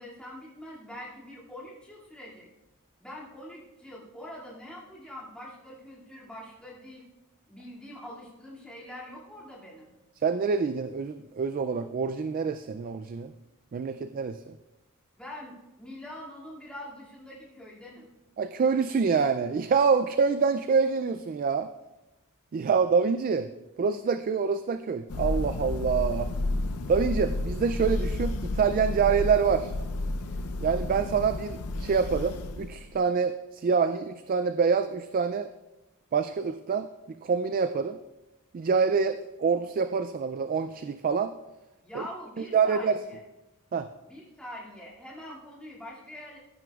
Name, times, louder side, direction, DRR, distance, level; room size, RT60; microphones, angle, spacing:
voice 1, 0.0-2.5 3.0-7.1 7.5-9.9 15.2-18.1 41.8-43.2 44.0-46.4, left 1 dB, 5° left, -7 dB, 2.4 m, -44 dB
voice 2, 10.2-13.3 13.7-14.5 18.4-21.7 22.5-23.5 23.8-26.3 26.9-29.7 30.6-35.5 36.1-36.9 37.2-38.0 38.5-41.3 42.0-42.1 42.5-43.0 43.7-43.9, right 5 dB, 40° right, 10 dB, 0.3 m, -26 dB
Thunder, 25.1-33.0, left 2 dB, 90° left, 0.6 m, -31 dB
15.5 x 9.1 x 2.4 m, 1.0 s
head